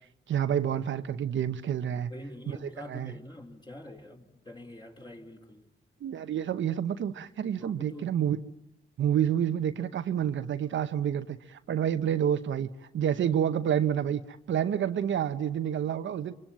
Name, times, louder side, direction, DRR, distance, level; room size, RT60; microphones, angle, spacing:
voice 1, 0.3-2.1 2.5-2.6 2.9-3.1 6.0-8.4 9.0-16.3, right 9 dB, 80° right, 1.0 m, -29 dB
voice 2, 2.1-5.6 7.6-8.2, left 1 dB, 20° left, 4.5 m, -45 dB
27.0 x 24.0 x 9.0 m
cardioid pair, 65°, 20 cm